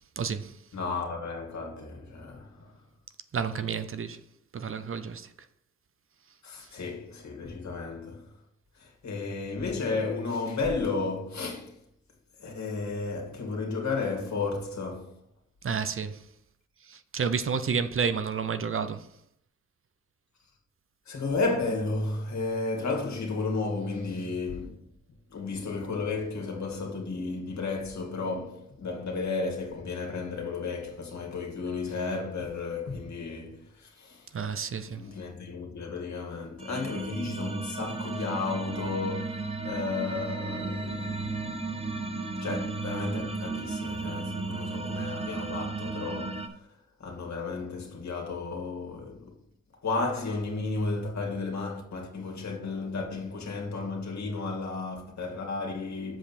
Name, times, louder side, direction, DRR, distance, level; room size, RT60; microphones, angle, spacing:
voice 1, 0.2-0.5 3.3-4.2 4.5-5.3 15.6-16.2 16.9-19.1 34.3-35.0, right 6 dB, 45° right, 0.7 m, -30 dB
voice 2, 0.7-2.7 6.4-8.3 8.8-11.8 12.4-15.2 21.1-24.8 25.3-34.3 34.9-46.6 47.0-49.3 49.8-56.2, left 3 dB, 65° left, 2.3 m, -33 dB
sound 1, 36.6-46.5, right 3 dB, 20° right, 0.9 m, -34 dB
7.6 x 5.2 x 4.4 m
cardioid pair, 55°, 30 cm